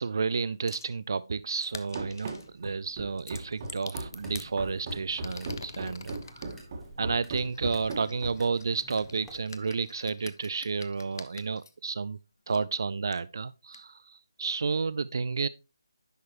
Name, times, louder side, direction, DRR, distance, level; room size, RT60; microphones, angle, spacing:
voice 1, 0.0-2.3 2.6-6.5 7.0-12.2 12.5-15.5, right 4 dB, 55° right, 0.3 m, -31 dB
sound 1, 0.7-0.9 1.6-2.5 3.2-4.5 5.1-6.5 7.3-11.7 12.5-12.6 13.1-13.2 13.7-13.8, left 4 dB, 50° left, 0.7 m, -46 dB
Run, 2.0-8.6, right 2 dB, 35° right, 1.6 m, -38 dB
sound 2, 4.1-9.4, left 1 dB, 5° left, 1.1 m, -54 dB
10.5 x 6.3 x 3.0 m
figure-of-eight pair, 155°, 2 cm